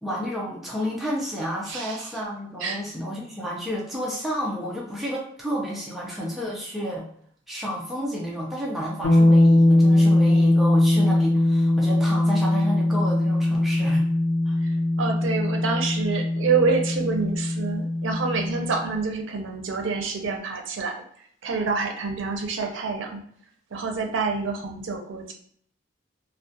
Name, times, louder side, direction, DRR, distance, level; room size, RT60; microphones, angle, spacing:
voice 1, 0.0-7.1 7.5-14.1 14.5-14.6, equal, ahead, -5 dB, 0.4 m, -31 dB
voice 2, 1.7-2.1 2.6-2.8 14.6-20.9 21.4-23.2 23.7-25.3, right 4 dB, 85° right, 3 dB, 0.5 m, -27 dB
sound 1, 9.0-18.8, left 1 dB, 75° left, 0.5 m, -20 dB
2.3 x 2.1 x 2.6 m, 0.62 s
head